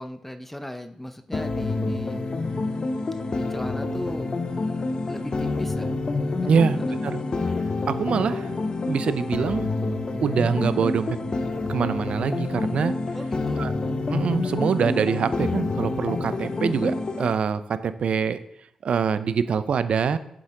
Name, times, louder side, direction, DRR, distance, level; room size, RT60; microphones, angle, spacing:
voice 1, 0.0-2.2 3.3-4.3 4.6-5.9 6.4-6.5 6.8-7.0 13.1-13.7, left 1 dB, 10° left, 8 dB, 0.8 m, -37 dB
sound 1, 1.3-17.3, left 3 dB, 45° left, 0.9 m, -28 dB
voice 2, 6.5-7.2 7.9-8.5 8.9-9.7 10.2-11.2 11.7-12.9 13.6-13.7 14.1-18.4 18.8-20.2, right 6 dB, 65° right, 13 dB, 0.6 m, -24 dB
8.0 x 7.7 x 3.8 m, 0.74 s
supercardioid pair, 40°, 2 cm